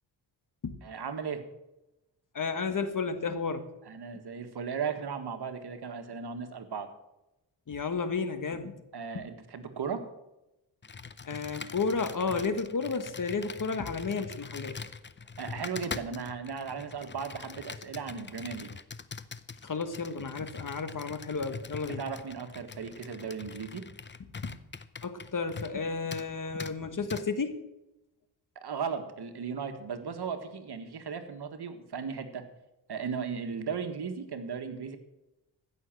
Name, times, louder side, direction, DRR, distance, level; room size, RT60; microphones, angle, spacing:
voice 1, 0.8-1.5 3.8-6.9 8.9-10.0 15.4-18.7 21.9-23.9 28.5-32.5 32.9-35.0, right 6 dB, 60° right, 7 dB, 1.7 m, -36 dB
voice 2, 2.3-3.7 7.7-8.7 11.3-14.8 19.6-22.0 25.0-27.6, left 4 dB, 45° left, 10 dB, 1.4 m, -32 dB
Computer keyboard, 10.8-25.8 26.1-26.3 26.6-26.7 27.1-27.2, left 5 dB, 25° left, 0.7 m, -43 dB
15.5 x 6.5 x 7.7 m, 0.95 s
cardioid pair, 65°, 43 cm